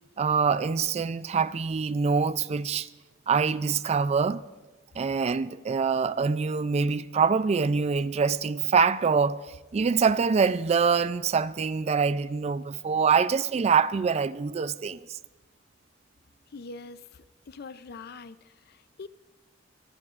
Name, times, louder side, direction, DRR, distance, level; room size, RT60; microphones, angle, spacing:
voice 1, 0.2-2.9 3.3-4.4 5.0-15.2, right 5 dB, 35° right, 0.3 m, -25 dB
voice 2, 16.5-19.1, left 4 dB, 55° left, 0.5 m, -44 dB
24.0 x 16.5 x 2.5 m
head